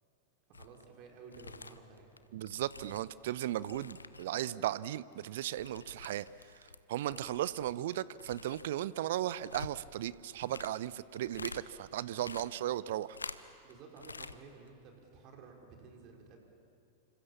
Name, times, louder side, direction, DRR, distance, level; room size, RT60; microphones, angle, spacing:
sound 1, 0.5-0.9 1.2-4.4 4.7-6.8 7.1-11.6 12.0-13.7 14.0-14.4 14.7-14.8, left 4 dB, 80° left, 0.9 m, -48 dB
voice 1, 0.5-2.2 13.6-16.4, right 5 dB, 40° right, 1 dB, 5.0 m, -53 dB
voice 2, 2.3-6.3 6.9-13.2, right 13 dB, 55° right, 19 dB, 0.6 m, -36 dB
28.5 x 26.0 x 7.2 m, 2.7 s
figure-of-eight pair, 90°, 0 cm